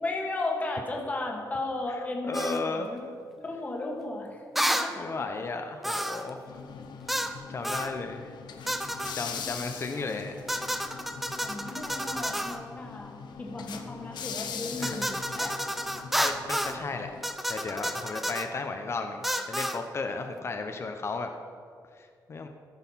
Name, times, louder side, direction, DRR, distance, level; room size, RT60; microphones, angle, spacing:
voice 1, 0.0-3.0 3.4-5.1 9.4-9.5 9.8-9.9 11.4-15.6, left 2 dB, 20° left, 0 dB, 1.5 m, -35 dB
voice 2, 2.2-2.9 4.6-4.7 5.0-6.6 7.5-8.3 9.1-10.3 14.8-15.1 16.2-17.1 17.5-21.3 22.0-22.5, left 4 dB, 35° left, 5 dB, 0.7 m, -34 dB
sound 1, 2.3-2.6 4.6-4.9 5.8-6.3 7.1-7.4 7.6-7.9 8.7-9.2 10.5-12.6 14.8-16.8 17.2-18.5 19.2-19.8, equal, ahead, 0.5 m, -30 dB
sound 2, 6.5-17.2, left 6 dB, 85° left, 0.9 m, -42 dB
14.0 x 6.4 x 5.6 m, 2.1 s
wide cardioid pair, 175°, 7 cm